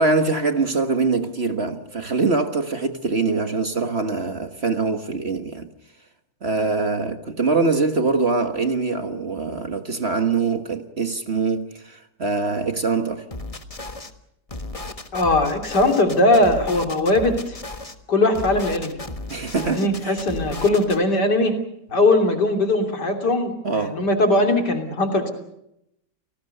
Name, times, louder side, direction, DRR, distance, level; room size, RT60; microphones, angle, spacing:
voice 1, 0.0-5.7 6.4-13.3 19.3-20.2 23.6-24.0, right 3 dB, 40° right, 1.5 m, -23 dB
sound 1, 13.3-14.1 14.5-17.9 18.3-21.0, left 2 dB, 20° left, 1.4 m, -35 dB
voice 2, 15.1-17.6 18.1-19.0 19.7-21.6 21.9-25.3, left 2 dB, 70° left, 3.7 m, -20 dB
29.5 x 19.0 x 6.7 m
omnidirectional pair, 1.9 m